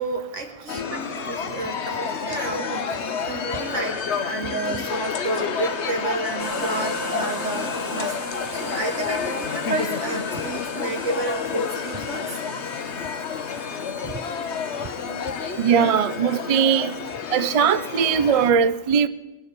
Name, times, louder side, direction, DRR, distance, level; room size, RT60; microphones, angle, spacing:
voice 1, 0.0-12.4 13.5-13.6 15.0-15.2, right 3 dB, 80° right, 3 dB, 2.2 m, -31 dB
sound 1, 0.7-18.5, left 6 dB, 65° left, 1.2 m, -29 dB
sound 2, 6.4-15.7, right 3 dB, 20° right, 1.1 m, -39 dB
voice 2, 15.6-16.9 17.3-19.1, right 7 dB, 50° right, 15 dB, 0.4 m, -20 dB
20.5 x 7.0 x 8.2 m, 1.1 s
omnidirectional pair, 1.2 m